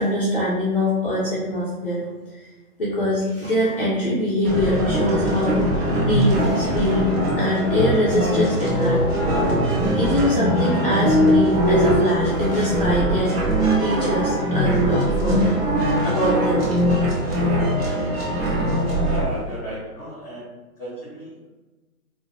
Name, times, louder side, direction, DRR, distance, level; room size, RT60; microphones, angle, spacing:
voice 1, 0.0-2.0 2.3-2.4 2.8-7.1 7.3-9.1 9.7-13.4 13.8-15.6 16.0-16.7, left 1 dB, 40° left, -8 dB, 0.4 m, -23 dB
sound 1, 4.4-19.3, equal, 40° right, 0.7 m, -21 dB
voice 2, 18.8-20.5 20.8-21.5, right 1 dB, 5° left, -9 dB, 0.8 m, -35 dB
2.3 x 2.0 x 3.1 m, 1.2 s
hypercardioid pair, 155°, 46 cm